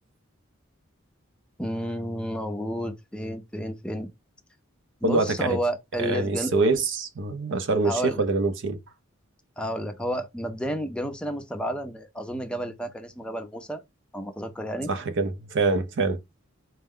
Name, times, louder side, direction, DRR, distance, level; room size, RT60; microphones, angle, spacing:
voice 1, 1.6-4.1 5.0-6.5 7.8-8.2 9.6-13.8 14.1-14.9, equal, 5° left, 0.5 m, -31 dB
voice 2, 5.0-5.6 6.0-8.8 14.9-16.2, right 3 dB, 65° right, 0.5 m, -25 dB
4.3 x 2.1 x 3.6 m
head